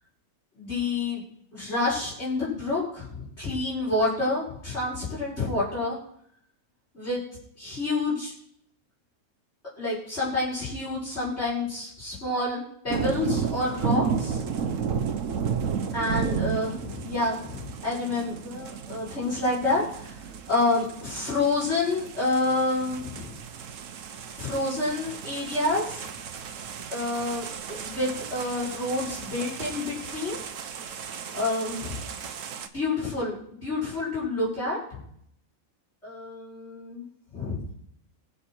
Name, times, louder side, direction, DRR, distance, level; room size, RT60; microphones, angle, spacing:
voice 1, 0.6-1.2 1.5-6.0 6.9-7.2 7.6-8.3 9.8-14.4 15.9-20.2 20.5-23.3 24.4-26.1 26.9-30.4 31.3-32.0 32.7-33.3 33.6-35.0 36.0-37.0 37.3-37.6, left 2 dB, 50° left, -7 dB, 5.3 m, -28 dB
sound 1, 12.9-32.7, right 6 dB, 65° right, 1.2 m, -33 dB
20.5 x 7.4 x 4.5 m, 0.69 s
omnidirectional pair, 1.5 m